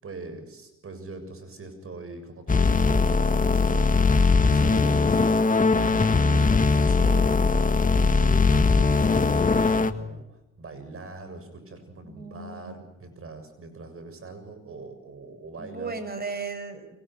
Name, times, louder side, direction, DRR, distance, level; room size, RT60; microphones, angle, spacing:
voice 1, 0.0-16.0, right 3 dB, 45° right, 9 dB, 7.2 m, -42 dB
sound 1, 2.5-9.9, left 4 dB, 25° left, 1.8 m, -20 dB
voice 2, 12.0-12.8 15.6-17.0, right 4 dB, 30° right, 10 dB, 6.0 m, -36 dB
30.0 x 23.5 x 6.2 m, 0.90 s
cardioid pair, 90°, 30 cm